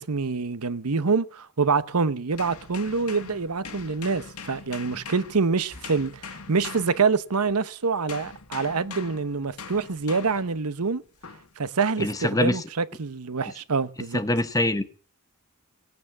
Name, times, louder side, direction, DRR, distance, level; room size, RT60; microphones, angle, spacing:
voice 1, 0.0-11.0 11.6-14.2, right 4 dB, 85° right, 0.9 m, -26 dB
sound 1, 2.3-7.6 8.1-10.6 11.2-11.5, left 5 dB, 85° left, 1.7 m, -42 dB
voice 2, 12.0-12.6 14.1-14.8, left 1 dB, 15° left, 1.1 m, -24 dB
18.5 x 9.3 x 7.2 m
head